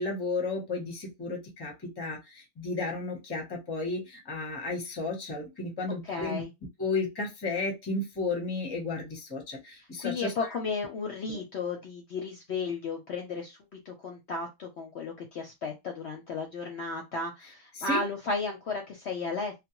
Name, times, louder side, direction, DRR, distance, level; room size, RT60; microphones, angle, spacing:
voice 1, 0.0-6.4 6.8-10.3 11.3-11.4 17.7-18.0, left 3 dB, 20° left, 0.7 m, -33 dB
voice 2, 6.0-6.5 10.0-19.7, left 4 dB, 60° left, 0.8 m, -34 dB
2.3 x 2.2 x 2.9 m
omnidirectional pair, 1.5 m